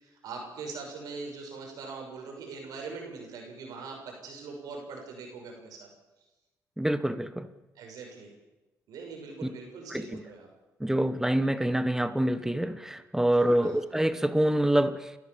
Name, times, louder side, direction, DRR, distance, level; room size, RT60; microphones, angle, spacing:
voice 1, 0.0-5.9 7.8-8.3 8.9-10.5 13.6-13.8, right 4 dB, 85° right, 2 dB, 6.4 m, -42 dB
voice 2, 6.8-7.5 9.9-10.2 10.8-15.1, right 1 dB, 5° right, 12 dB, 1.4 m, -26 dB
30.0 x 13.0 x 7.3 m, 1.0 s
cardioid pair, 80°, 6 cm